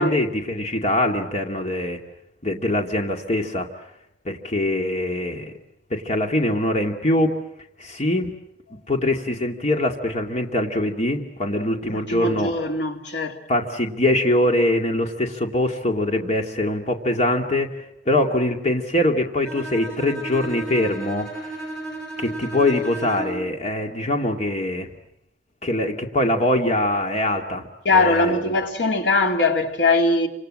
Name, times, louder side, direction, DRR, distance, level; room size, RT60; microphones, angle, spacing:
voice 1, 0.0-2.0 2.4-3.7 4.3-5.5 5.9-7.3 7.8-8.3 8.9-12.5 13.5-21.7 22.2-24.9 25.6-27.7 27.9-28.5, left 1 dB, 40° left, 2.3 m, -23 dB
voice 2, 11.8-13.4 27.8-30.3, left 2 dB, 80° left, 2.8 m, -21 dB
Bowed string instrument, 19.4-23.5, right 1 dB, 5° left, 6.8 m, -34 dB
29.5 x 26.0 x 7.6 m
head